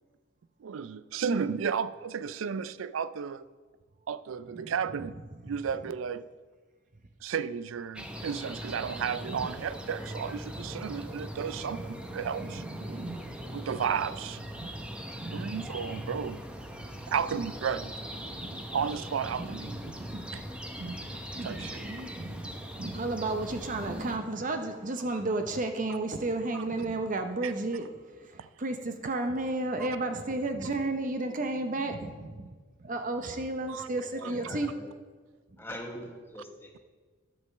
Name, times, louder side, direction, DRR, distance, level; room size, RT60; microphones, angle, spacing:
voice 1, 0.6-3.4 4.1-5.2 5.4-6.2 7.2-12.6 13.5-14.4 15.3-16.4 17.1-17.9 18.7-19.8 20.3-20.4 21.4-21.8 27.4-27.5 28.4-28.5 33.7-33.9, right 7 dB, 75° right, 0.4 m, -33 dB
voice 2, 4.5-5.1 5.5-5.6 9.3-9.5 10.5-10.7 11.7-11.8 12.4-13.6 14.6-14.7 15.1-15.5 18.2-18.9 19.4-20.3 20.6-21.0 21.3-32.5 32.8-34.7, right 2 dB, 40° right, 0.7 m, -33 dB
sound 1, 8.0-24.2, equal, 5° right, 0.7 m, -40 dB
voice 3, 33.9-34.8 35.6-36.8, equal, 10° left, 1.3 m, -43 dB
11.5 x 5.3 x 6.5 m
head